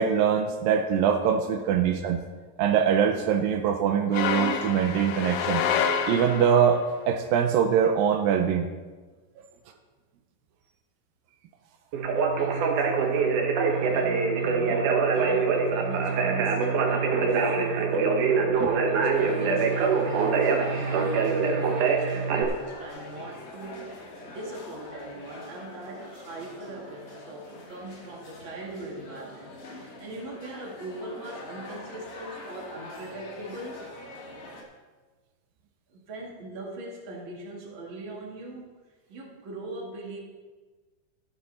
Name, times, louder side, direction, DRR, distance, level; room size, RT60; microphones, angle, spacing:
voice 1, 0.0-2.2 2.6-5.6 6.1-6.8 7.1-8.7 18.6-18.7, right 8 dB, 85° right, 5 dB, 2.4 m, -23 dB
sound 1, 4.1-6.8, left 7 dB, 80° left, 2.5 m, -27 dB
Conversation, 11.9-22.4, right 5 dB, 70° right, 2.5 m, -24 dB
voice 2, 12.3-33.8 35.9-38.7 39.1-40.2, right 2 dB, 40° right, -3 dB, 2.6 m, -40 dB
sound 2, 19.1-34.6, left 1 dB, 45° left, 2.4 m, -44 dB
13.5 x 10.0 x 4.2 m, 1.3 s
omnidirectional pair, 4.1 m